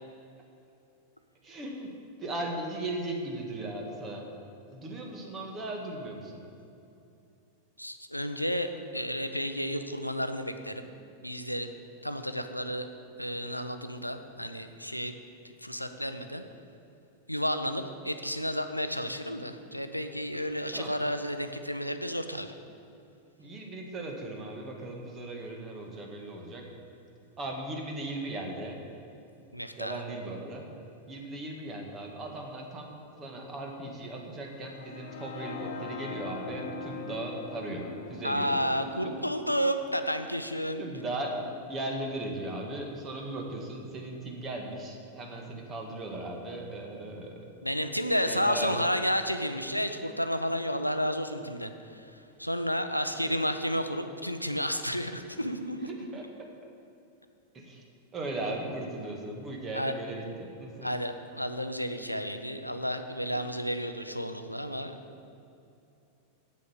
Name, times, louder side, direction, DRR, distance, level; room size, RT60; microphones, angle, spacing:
voice 1, 1.4-1.9 2.2-4.3 4.7-6.4 20.7-20.9 23.4-26.7 27.4-28.8 29.8-30.7 31.1-38.5 39.0-39.2 40.8-47.5 48.3-48.7 53.1-53.3 55.9-56.5 57.5-57.8 58.1-60.9, right 2 dB, 25° right, 1 dB, 1.9 m, -37 dB
voice 2, 7.8-10.9 11.2-11.7 12.0-12.9 13.2-15.2 15.6-16.4 17.3-22.5 29.5-30.0 38.2-40.8 47.6-56.1 59.7-59.9 60.8-65.0, equal, 90° left, 8 dB, 0.6 m, -31 dB
sound 1, 34.6-42.5, left 5 dB, 55° left, 0.9 m, -43 dB
8.4 x 7.7 x 7.2 m, 2.7 s
figure-of-eight pair, 90°, 0 cm